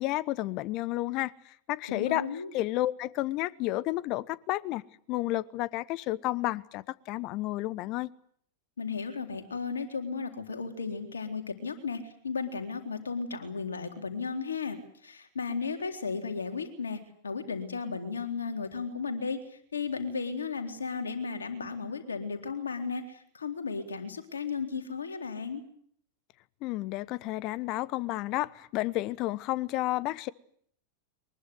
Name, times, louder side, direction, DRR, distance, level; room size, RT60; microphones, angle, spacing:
voice 1, 0.0-1.3 1.7-2.3 2.5-4.8 5.1-8.1 26.6-30.3, left 17 dB, 40° left, 1.0 m, -31 dB
voice 2, 1.9-2.5 8.8-14.8 15.0-25.6, left 5 dB, 70° left, 3.9 m, -35 dB
23.5 x 21.5 x 8.0 m
figure-of-eight pair, 90°, 0 cm